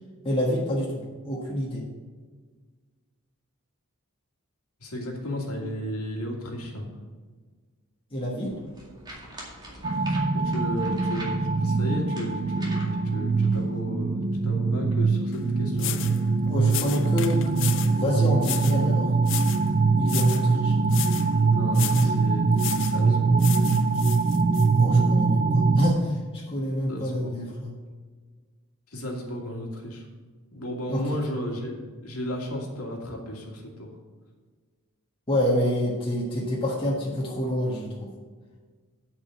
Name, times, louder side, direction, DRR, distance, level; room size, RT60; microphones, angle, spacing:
voice 1, 0.2-1.9 8.1-8.5 16.5-19.1 20.0-20.7 24.8-27.7 30.9-31.0 35.3-38.1, left 1 dB, 25° left, -5 dB, 1.6 m, -27 dB
voice 2, 4.8-6.9 10.3-16.1 20.7-23.5 26.9-27.3 28.9-30.1 30.5-34.0, equal, 80° left, 0 dB, 2.2 m, -34 dB
sound 1, 8.5-13.8, right 1 dB, 20° right, 2.1 m, -44 dB
sound 2, 9.8-25.9, right 4 dB, 35° right, 0.4 m, -23 dB
sound 3, 15.3-15.4 15.8-16.2 16.7-18.0 18.4-18.8 19.2-19.7 20.0-20.5 20.9-21.3 21.7-22.1 22.6-23.0 23.4-24.7, left 13 dB, 60° left, 0.5 m, -34 dB
8.8 x 5.4 x 7.7 m, 1.5 s
head